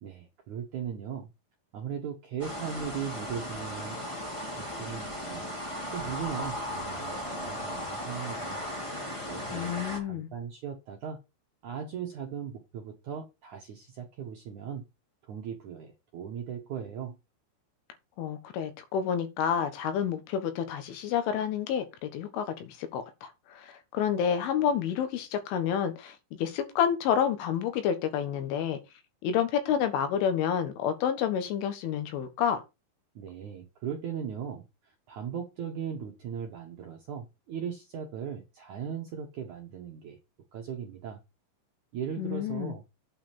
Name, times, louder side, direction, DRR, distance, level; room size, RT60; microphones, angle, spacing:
voice 1, 0.0-1.3 1.7-4.2 4.6-5.4 5.9-8.6 9.3-11.2 11.6-14.8 15.2-17.2 33.2-34.7 35.1-40.2 40.5-41.2 41.9-42.8, right 8 dB, 65° right, 1.9 m, -38 dB
sound 1, 2.4-10.0, equal, 35° left, 0.5 m, -36 dB
voice 2, 9.5-10.3 18.2-28.8 29.2-32.6 42.2-42.7, left 8 dB, 85° left, 3.9 m, -29 dB
8.6 x 5.0 x 7.4 m
omnidirectional pair, 5.4 m